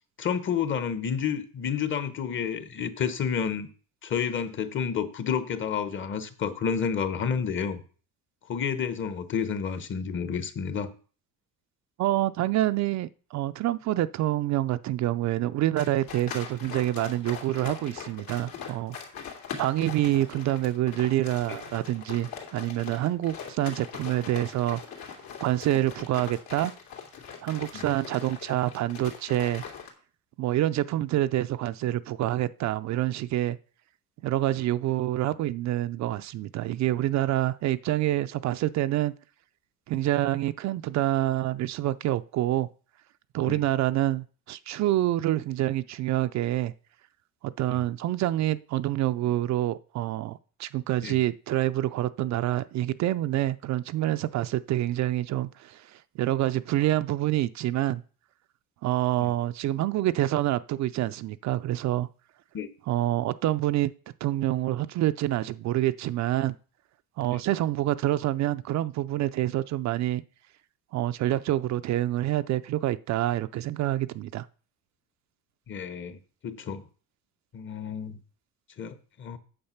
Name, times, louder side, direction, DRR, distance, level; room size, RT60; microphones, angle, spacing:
voice 1, 0.2-3.7 4.0-7.8 8.5-10.9 21.5-21.6 27.7-27.9 43.5-43.6 47.7-47.8 51.0-51.2 59.2-59.3 62.5-62.7 75.7-76.2 76.4-76.8 77.5-78.2 78.8-79.4, left 7 dB, 35° left, 12 dB, 1.0 m, -30 dB
voice 2, 12.0-19.0 19.6-25.1 25.4-26.7 27.4-29.6 30.4-33.6 34.2-39.1 39.9-42.7 43.3-46.7 47.4-58.0 58.8-62.1 62.9-63.9 64.2-66.5 67.2-70.2 70.9-74.5, right 14 dB, 50° right, 12 dB, 0.4 m, -27 dB
sound 1, 15.8-29.9, left 7 dB, 75° left, 2.8 m, -41 dB
8.8 x 7.3 x 5.7 m, 0.40 s
cardioid pair, 160°, 36 cm